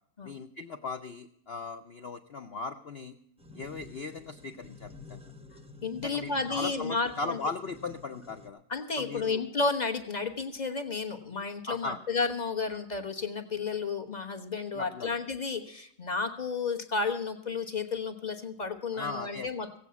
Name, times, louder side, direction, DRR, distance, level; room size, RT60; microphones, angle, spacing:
voice 1, 0.2-3.2 3.5-5.2 6.0-8.6 9.0-9.4 11.7-12.0 14.7-15.2 18.9-19.5, left 3 dB, 85° left, 7 dB, 0.5 m, -38 dB
sound 1, 3.4-8.5, left 3 dB, 5° right, 0.4 m, -50 dB
voice 2, 5.8-7.4 8.7-19.8, left 4 dB, 30° left, 7 dB, 1.0 m, -32 dB
16.5 x 8.5 x 6.9 m, 0.68 s
omnidirectional pair, 2.0 m